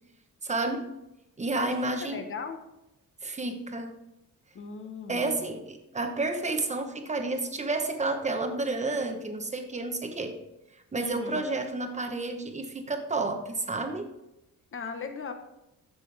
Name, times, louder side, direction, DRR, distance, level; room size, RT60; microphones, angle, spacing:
voice 1, 0.4-0.9 1.4-2.3 3.2-3.9 5.1-10.4 10.9-14.1, right 2 dB, 20° right, 5 dB, 1.0 m, -30 dB
voice 2, 2.0-2.6 4.5-5.5 11.0-11.4 14.7-15.3, left 5 dB, 40° left, 6 dB, 1.1 m, -38 dB
14.0 x 6.1 x 3.4 m, 0.92 s
wide cardioid pair, 180°, 34 cm